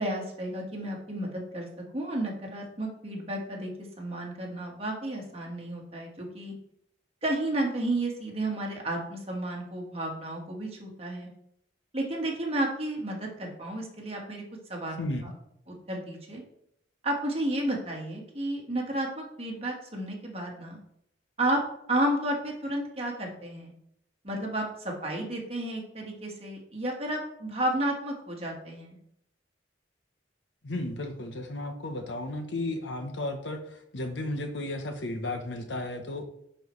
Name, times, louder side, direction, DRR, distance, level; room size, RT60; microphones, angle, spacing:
voice 1, 0.0-1.7 1.9-3.7 4.0-6.5 7.2-11.3 11.9-14.4 14.7-15.1 15.7-16.4 17.0-20.8 21.4-21.6 21.9-23.7 24.2-29.0, right 1 dB, 35° right, -1 dB, 1.5 m, -32 dB
voice 2, 30.6-36.3, left 1 dB, 80° left, 7 dB, 0.9 m, -34 dB
10.5 x 4.4 x 3.1 m, 0.74 s
head